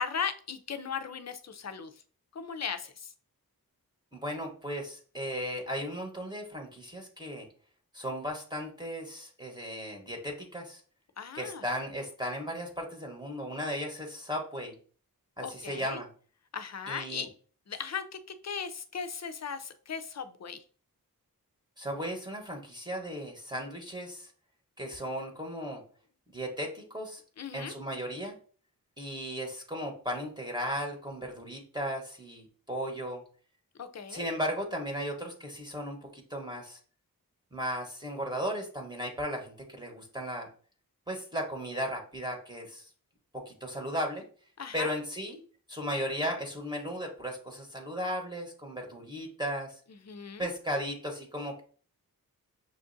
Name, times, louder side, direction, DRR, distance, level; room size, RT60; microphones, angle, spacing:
voice 1, 0.0-1.9 2.3-3.1 11.2-11.6 15.4-16.0 16.5-17.3 17.7-20.6 27.4-27.7 33.8-34.2 44.6-44.9 50.0-50.5, left 6 dB, 45° left, 9 dB, 0.5 m, -37 dB
voice 2, 4.1-7.5 7.9-10.8 11.3-14.7 15.4-16.1 16.9-17.2 21.8-24.3 24.8-25.8 26.3-27.2 27.5-28.3 29.0-33.2 34.1-36.8 37.5-40.5 41.1-42.8 43.3-44.2 44.7-45.4 45.7-49.7 50.4-51.6, equal, 10° right, 0 dB, 1.0 m, -36 dB
6.3 x 2.5 x 2.5 m, 0.42 s
cardioid pair, 50°, 36 cm